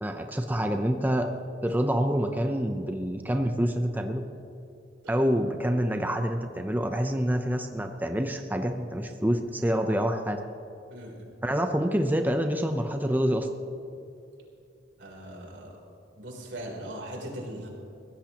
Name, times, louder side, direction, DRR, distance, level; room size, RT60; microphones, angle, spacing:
voice 1, 0.0-1.3 1.6-4.2 5.1-10.4 11.4-13.5, equal, 10° right, 5 dB, 0.6 m, -27 dB
voice 2, 10.9-11.3 15.0-15.8 16.2-17.7, right 1 dB, 85° right, -1 dB, 3.4 m, -40 dB
22.0 x 16.5 x 3.0 m, 2.6 s
head